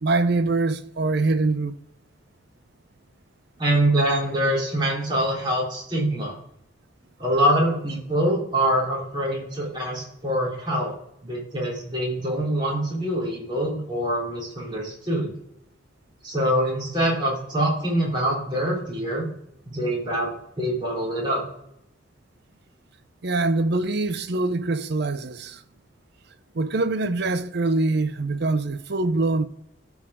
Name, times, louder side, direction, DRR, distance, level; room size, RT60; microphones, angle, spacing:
voice 1, 0.0-1.7 23.2-25.6 26.5-29.4, right 2 dB, 60° right, 0.6 m, -24 dB
voice 2, 3.6-6.4 7.2-10.9 11.2-15.3 16.2-19.3 19.7-21.4, right 1 dB, 25° right, 3.6 m, -24 dB
14.0 x 4.8 x 3.6 m
head